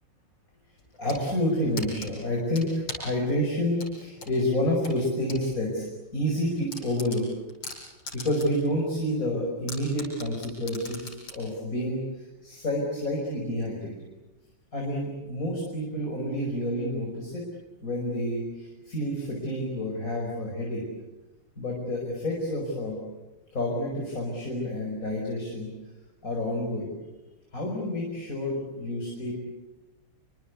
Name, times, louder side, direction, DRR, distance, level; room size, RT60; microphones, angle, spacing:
sound 1, 0.8-1.2 1.8-3.2 3.8-5.4 5.8-5.9 6.3-6.4 6.7-8.7 9.0-9.1 9.7-11.4, left 3 dB, 60° left, 7.2 m, -39 dB
voice 1, 1.0-5.9 6.1-7.2 8.1-12.0 12.4-13.9 14.7-17.5 17.8-20.8 21.6-23.0 23.5-25.7 26.2-26.9 27.5-29.3, left 1 dB, 40° left, -1 dB, 5.8 m, -29 dB
28.5 x 24.5 x 8.3 m, 1.1 s
omnidirectional pair, 2.4 m